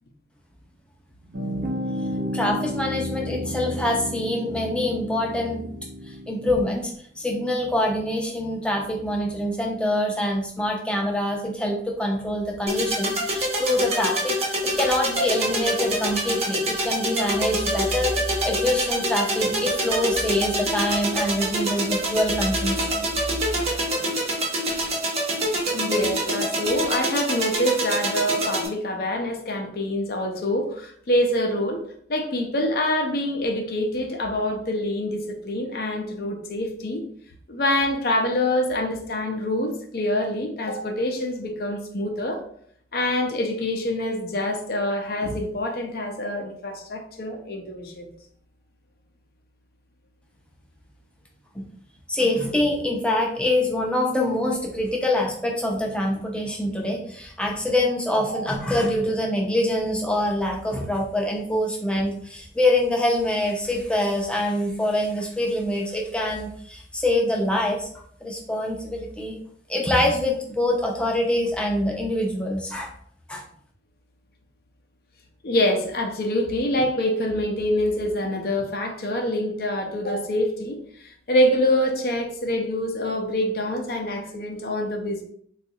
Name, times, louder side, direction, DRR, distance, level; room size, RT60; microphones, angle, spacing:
voice 1, 1.2-1.7 2.3-5.6 6.0-18.1 18.4-23.1 51.5-51.7 52.1-67.9 68.2-69.4 69.7-72.9 73.3-73.4, left 1 dB, 5° left, -1 dB, 0.5 m, -25 dB
sound 1, 1.3-6.8, equal, 65° right, 0.8 m, -32 dB
sound 2, 12.7-28.7, right 1 dB, 35° right, 0.7 m, -26 dB
voice 2, 25.7-31.8 32.1-37.0 37.5-42.4 42.9-48.1 58.3-58.4 75.4-80.8 81.0-85.2, left 1 dB, 55° left, 3 dB, 0.5 m, -25 dB
3.8 x 2.3 x 2.7 m, 0.63 s
head